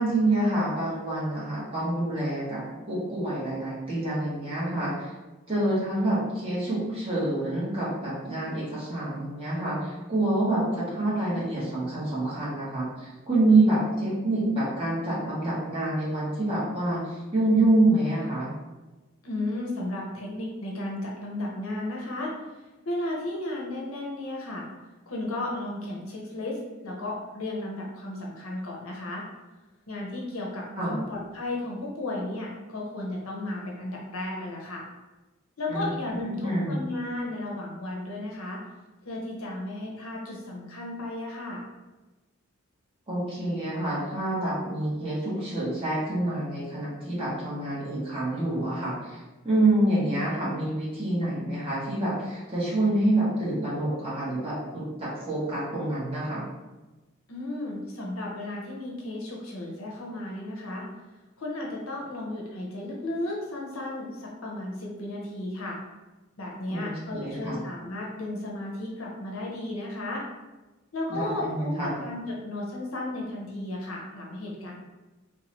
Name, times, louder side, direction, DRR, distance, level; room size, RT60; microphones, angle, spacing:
voice 1, 0.0-2.6 2.9-5.1 5.5-18.5 30.7-31.0 35.7-35.9 36.4-36.7 43.1-56.4 66.7-67.6 71.1-71.9, right 2 dB, 25° right, -9 dB, 1.4 m, -27 dB
voice 2, 19.2-24.6 25.1-29.2 29.9-34.8 35.6-38.6 39.0-41.6 57.3-60.8 61.4-65.8 66.4-70.2 70.9-74.7, left 1 dB, 85° left, -2 dB, 0.9 m, -34 dB
3.9 x 2.7 x 3.1 m, 1.1 s
head